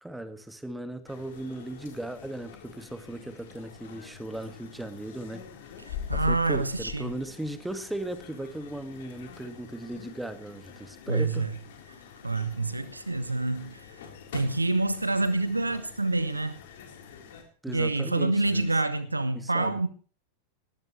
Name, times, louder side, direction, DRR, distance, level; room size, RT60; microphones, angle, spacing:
voice 1, 0.0-5.5 6.1-11.5 17.6-18.7 19.3-19.8, right 1 dB, 5° right, 10 dB, 2.0 m, -37 dB
sound 1, 1.1-17.4, left 8 dB, 55° left, 4.2 m, -44 dB
voice 2, 5.9-7.1 11.1-11.5 12.2-14.1 14.3-16.6 17.7-19.9, right 2 dB, 80° right, 13 dB, 1.3 m, -27 dB
18.5 x 18.5 x 3.3 m, 0.41 s
figure-of-eight pair, 90°, 0 cm